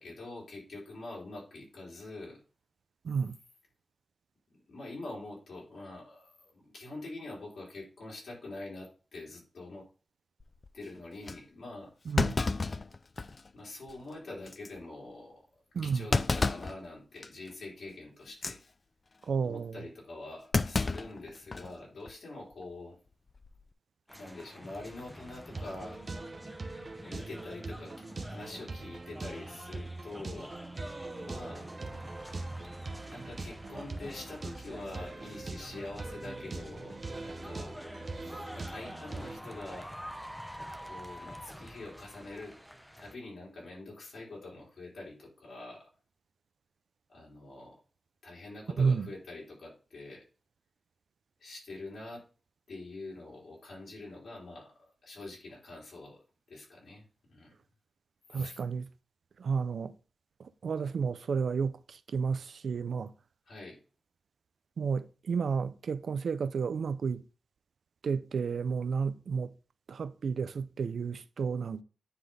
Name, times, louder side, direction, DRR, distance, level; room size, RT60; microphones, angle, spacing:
voice 1, 0.0-2.4 4.5-9.9 10.7-11.9 13.5-15.4 15.8-18.6 19.4-23.0 24.1-26.0 27.0-27.9 28.2-30.6 31.1-31.7 33.0-37.7 38.5-39.9 40.8-42.6 43.0-45.9 47.1-47.8 48.2-50.3 51.4-52.3 52.7-54.7 55.0-56.2 56.5-57.6 58.3-58.6 63.5-63.8, left 2 dB, 80° left, 3.6 m, -45 dB
voice 2, 3.0-3.4 12.1-12.4 15.7-16.0 19.3-19.8 48.8-49.1 58.3-58.9 59.4-59.9 60.4-63.1 64.8-67.2 68.0-69.5 69.9-71.8, right 5 dB, 80° right, 0.4 m, -31 dB
Thump thud, 10.4-10.7 11.3-11.4 12.2-13.5 13.9-14.0 14.5-14.7 16.1-16.8 17.2-17.5 18.3-18.6 20.5-21.7 22.1-22.2 23.3-23.6, left 3 dB, 35° left, 0.3 m, -30 dB
sound 1, 24.1-43.1, equal, ahead, 0.6 m, -47 dB
sound 2, 25.5-39.4, right 3 dB, 45° right, 0.8 m, -42 dB
9.6 x 4.0 x 3.4 m
wide cardioid pair, 140°, 0 cm